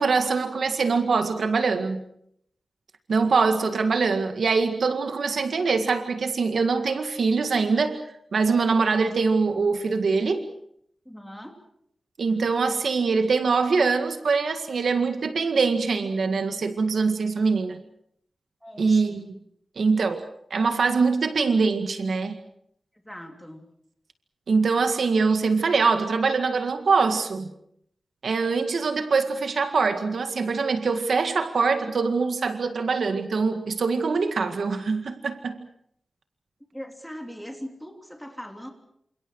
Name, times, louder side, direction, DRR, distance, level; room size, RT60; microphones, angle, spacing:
voice 1, 0.0-2.1 3.1-8.0 8.3-10.4 12.2-17.8 18.8-19.3 19.8-20.2 20.5-22.4 24.5-27.5 28.2-35.6, right 4 dB, 60° right, 7 dB, 2.0 m, -23 dB
voice 2, 11.1-11.6 18.6-19.3 22.9-23.7 36.7-38.7, equal, ahead, 3 dB, 3.3 m, -40 dB
29.0 x 27.5 x 4.8 m, 0.70 s
wide cardioid pair, 180°, 0 cm